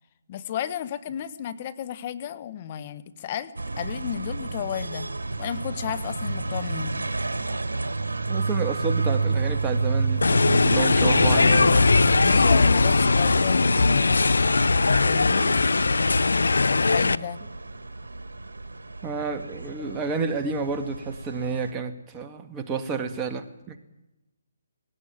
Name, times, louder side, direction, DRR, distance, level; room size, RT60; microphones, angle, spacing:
voice 1, 0.3-3.5 3.8-5.1 5.4-7.0 12.2-14.4 15.0-15.7 16.7-17.4, left 10 dB, 35° left, 12 dB, 1.1 m, -33 dB
sound 1, 3.6-21.7, right 3 dB, 85° right, 1.6 m, -30 dB
voice 2, 8.3-12.0 19.0-23.8, right 5 dB, 15° right, 6 dB, 1.8 m, -30 dB
sound 2, 10.2-17.2, left 3 dB, 80° left, 0.7 m, -20 dB
19.5 x 18.0 x 8.9 m, 0.98 s
hypercardioid pair, 150°, 0 cm